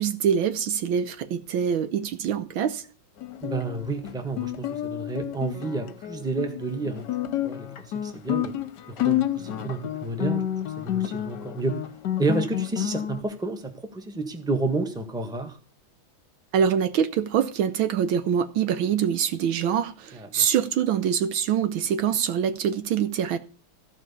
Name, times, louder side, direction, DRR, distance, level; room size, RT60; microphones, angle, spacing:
voice 1, 0.0-2.8 16.5-23.4, right 8 dB, 70° right, 1.5 m, -24 dB
Guitar, 3.2-13.2, left 12 dB, 60° left, 1.3 m, -30 dB
voice 2, 3.4-7.1 7.4-8.5 8.9-10.4 10.8-11.8 12.2-15.6 20.1-20.5, right 3 dB, ahead, 1.3 m, -30 dB
14.5 x 5.0 x 8.4 m
omnidirectional pair, 2.4 m